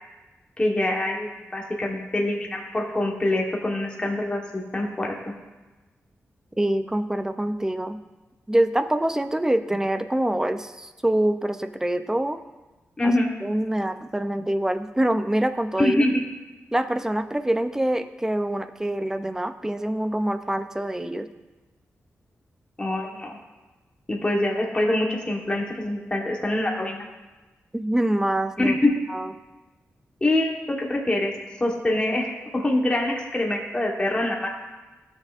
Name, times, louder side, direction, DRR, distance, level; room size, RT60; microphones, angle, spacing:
voice 1, 0.6-5.1 13.0-13.3 15.8-16.1 22.8-23.4 24.1-27.0 28.6-28.9 30.2-31.3 31.6-34.5, left 1 dB, 20° left, -1 dB, 1.2 m, -24 dB
voice 2, 6.6-8.0 8.5-12.4 13.0-13.1 13.4-16.0 16.7-21.3 27.7-28.8 29.1-29.3, right 1 dB, 10° right, 10 dB, 0.5 m, -25 dB
16.5 x 6.4 x 2.5 m, 1.2 s
wide cardioid pair, 105°, 5 cm